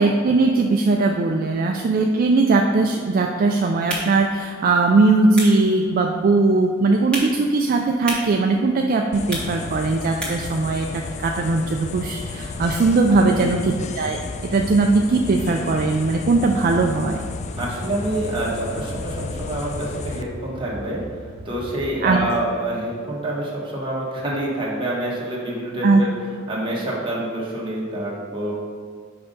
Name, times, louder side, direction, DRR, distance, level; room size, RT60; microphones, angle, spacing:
voice 1, 0.0-17.2 22.0-22.2 25.8-26.0, right 3 dB, 45° right, 2 dB, 0.4 m, -19 dB
sound 1, 3.7-10.6, right 1 dB, 5° left, 1.6 m, -35 dB
sound 2, 9.1-20.2, left 4 dB, 35° left, 0.3 m, -33 dB
sound 3, 12.3-22.3, equal, 65° left, 1.6 m, -39 dB
voice 2, 13.1-13.5 17.6-21.0 21.4-26.1 26.5-28.5, right 1 dB, 25° right, -5 dB, 1.5 m, -27 dB
5.7 x 5.3 x 3.9 m, 2.1 s
head